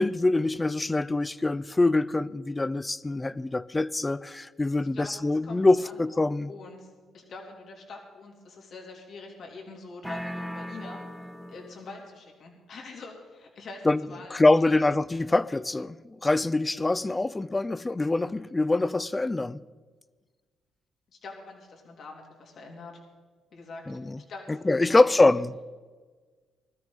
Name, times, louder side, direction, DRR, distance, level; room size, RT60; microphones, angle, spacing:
voice 1, 0.0-6.5 13.9-14.0 14.3-19.6 23.9-24.2 24.5-25.5, left 2 dB, 20° left, 0.5 m, -24 dB
voice 2, 5.4-6.9 7.1-11.0 11.5-14.8 21.2-23.0 23.5-23.9 24.2-25.4, left 3 dB, 60° left, 3.5 m, -44 dB
sound 1, 10.0-12.0, equal, ahead, 0.9 m, -38 dB
20.5 x 13.0 x 4.1 m
cardioid pair, 90°, 0 cm